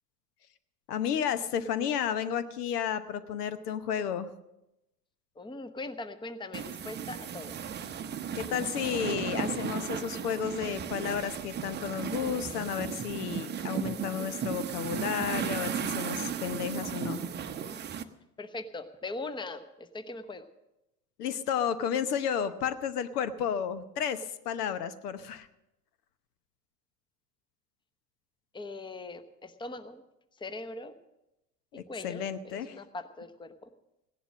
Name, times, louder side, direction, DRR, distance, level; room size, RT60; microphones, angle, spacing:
voice 1, 0.9-4.3 8.3-17.2 21.2-25.5 31.7-32.8, left 8 dB, 70° left, 13 dB, 1.0 m, -32 dB
voice 2, 5.4-7.6 18.4-20.5 28.5-30.0 30.4-30.9 31.9-33.7, left 2 dB, 10° left, 11 dB, 0.9 m, -41 dB
sound 1, 6.5-18.0, right 8 dB, 20° right, 0.8 m, -35 dB
16.5 x 11.0 x 6.2 m, 0.92 s
figure-of-eight pair, 75°, 48 cm